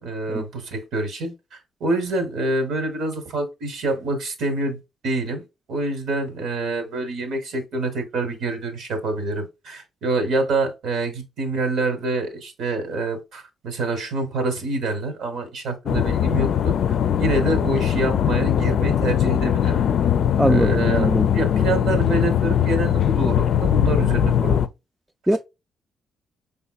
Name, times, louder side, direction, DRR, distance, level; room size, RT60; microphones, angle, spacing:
voice 1, 0.0-19.8 20.4-24.7 25.3-25.4, right 2 dB, 75° right, 1.5 m, -26 dB
sound 1, 15.9-24.7, left 9 dB, 65° left, 0.4 m, -20 dB
voice 2, 20.4-21.3 25.3-25.4, right 1 dB, 5° right, 0.4 m, -21 dB
5.5 x 3.5 x 2.3 m
cardioid pair, 90°, 0 cm